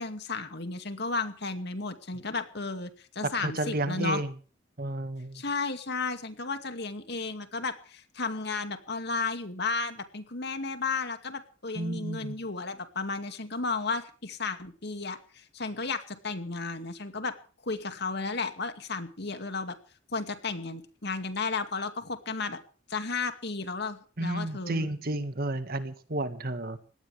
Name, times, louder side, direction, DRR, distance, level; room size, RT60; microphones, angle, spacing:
voice 1, 0.0-4.2 5.3-17.3 17.6-19.7 20.1-22.6 22.9-24.9, left 4 dB, 55° left, 8 dB, 2.3 m, -33 dB
voice 2, 3.4-4.3 4.8-5.4 11.8-12.4 24.2-26.8, right 1 dB, 50° right, 10 dB, 1.9 m, -32 dB
23.0 x 18.0 x 3.5 m, 0.39 s
head